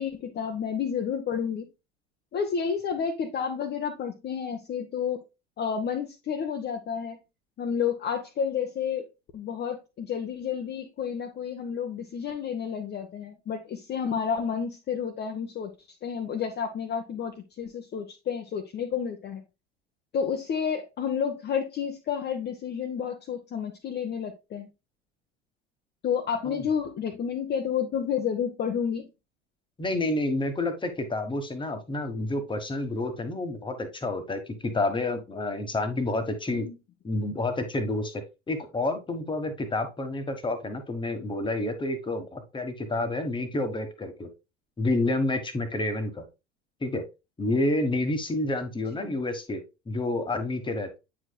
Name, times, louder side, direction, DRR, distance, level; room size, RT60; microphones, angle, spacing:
voice 1, 0.0-1.7 2.3-5.2 5.6-7.2 7.6-9.1 9.3-15.7 16.0-19.4 20.1-24.7 26.0-29.1 36.5-36.7 49.0-49.1, left 7 dB, 30° left, 0.9 m, -30 dB
voice 2, 29.8-36.7 37.0-44.3 44.8-46.2 46.8-47.0 47.4-51.0, left 2 dB, 15° left, 1.4 m, -29 dB
8.7 x 5.0 x 2.3 m
figure-of-eight pair, 70°, 34 cm